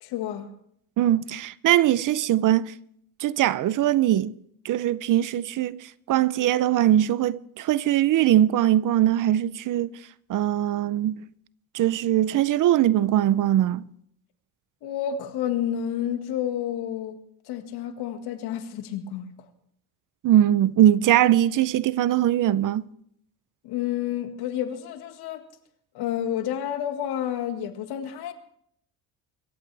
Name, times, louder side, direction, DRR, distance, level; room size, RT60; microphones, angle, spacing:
voice 1, 0.0-0.5 14.8-19.4 23.6-25.5 25.9-28.3, left 10 dB, 90° left, 1.9 m, -30 dB
voice 2, 1.0-2.7 3.2-4.4 4.6-10.0 10.3-11.1 11.7-13.9 20.2-22.9, right 12 dB, 55° right, 0.7 m, -21 dB
25.5 x 14.5 x 3.4 m
cardioid pair, 125°, 38 cm